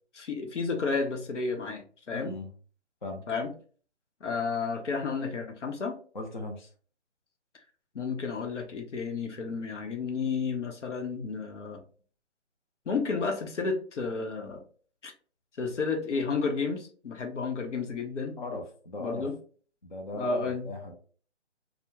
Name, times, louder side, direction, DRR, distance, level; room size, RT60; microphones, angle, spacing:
voice 1, 0.1-2.4 3.3-3.5 4.2-6.0 7.9-11.8 12.9-14.6 15.0-15.1 15.6-18.4 19.0-19.3 20.1-20.7, left 4 dB, 90° left, 3 dB, 0.8 m, -31 dB
voice 2, 2.1-2.5 3.0-3.2 6.1-6.7 9.5-9.6 18.4-19.3 19.8-20.9, left 2 dB, 45° left, 1 dB, 0.4 m, -38 dB
2.3 x 2.0 x 2.9 m, 0.42 s
hypercardioid pair, 170°, 35 cm